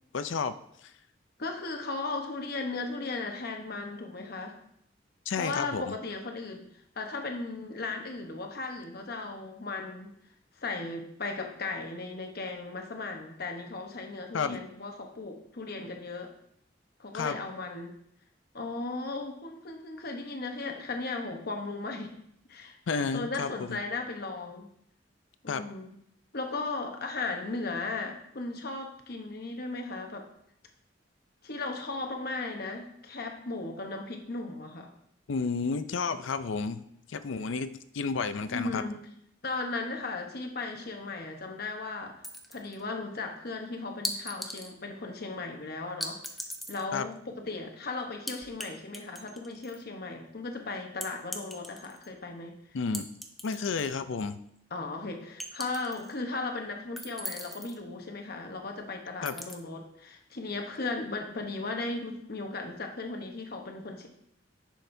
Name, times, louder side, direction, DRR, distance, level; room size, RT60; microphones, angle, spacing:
voice 1, 0.1-0.5 5.3-5.8 14.3-14.6 17.1-17.4 22.9-23.8 25.5-25.6 35.3-36.8 37.1-38.8 46.9-47.1 52.7-53.1 53.4-54.4 59.2-59.3, left 5 dB, 75° left, 12 dB, 0.5 m, -31 dB
voice 2, 1.4-4.6 5.4-6.7 7.0-10.1 10.6-16.3 17.0-18.0 18.5-22.1 22.5-22.8 23.1-24.7 25.4-26.0 26.3-30.3 31.4-34.9 38.5-39.0 39.4-42.2 42.5-46.2 46.7-52.5 54.7-64.1, left 3 dB, 55° left, 3 dB, 1.0 m, -36 dB
sound 1, 42.2-42.8 44.0-44.7 46.0-46.8 48.3-48.7 48.9-49.8 51.0-52.1 52.9-54.0 54.3-54.4 55.4-56.1 57.0-57.8 59.3-59.5, equal, ahead, 0.6 m, -39 dB
10.0 x 6.3 x 2.7 m, 0.72 s
head